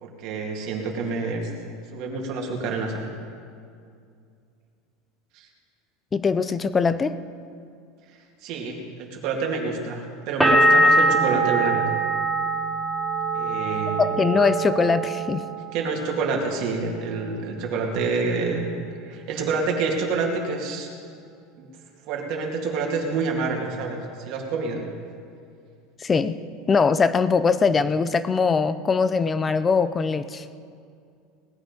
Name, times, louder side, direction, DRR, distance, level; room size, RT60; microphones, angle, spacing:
voice 1, 0.0-1.4 1.9-3.1 5.3-5.5 8.4-11.8 13.3-14.1 15.7-18.6 19.0-20.9 21.6-21.7 22.1-24.8, right 4 dB, 50° right, 0 dB, 2.3 m, -27 dB
voice 2, 6.1-7.1 14.0-15.5 26.0-26.4 26.7-30.4, left 5 dB, 15° left, 14 dB, 0.4 m, -21 dB
sound 1, 10.4-16.0 16.3-17.1, right 2 dB, ahead, 1.5 m, -22 dB
19.0 x 10.0 x 5.3 m, 2.3 s
supercardioid pair, 165°, 0 cm